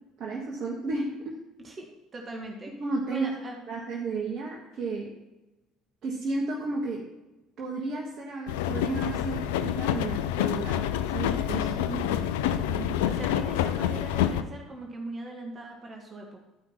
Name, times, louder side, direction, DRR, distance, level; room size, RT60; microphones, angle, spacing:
voice 1, 0.2-1.4 2.8-3.3 3.7-5.1 6.0-7.1 7.6-12.2 12.7-13.0, right 3 dB, 50° right, -2 dB, 1.4 m, -33 dB
voice 2, 1.6-2.7 3.1-3.6 12.0-12.5 13.0-16.4, right 1 dB, 35° right, 1 dB, 1.5 m, -41 dB
sound 1, 8.5-14.4, left 10 dB, 75° left, 0.4 m, -27 dB
11.0 x 5.2 x 4.3 m, 1.0 s
hypercardioid pair, 60°, 0 cm